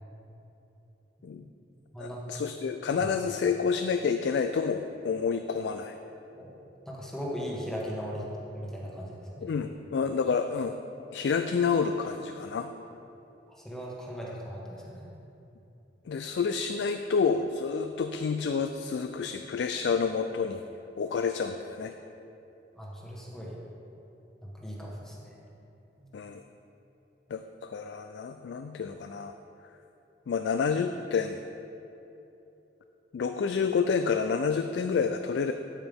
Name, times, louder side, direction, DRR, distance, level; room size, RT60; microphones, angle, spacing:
voice 1, 2.0-6.0 9.4-10.8 11.1-12.7 16.1-20.6 21.0-21.9 26.1-26.4 27.3-29.3 30.3-31.4 33.1-35.5, left 5 dB, 70° left, 7 dB, 0.3 m, -29 dB
voice 2, 6.9-8.2 8.5-9.5 13.6-15.0 22.8-23.6 24.4-25.2 26.0-26.1, equal, 5° left, -5 dB, 1.3 m, -38 dB
9.0 x 8.8 x 3.5 m, 2.9 s
head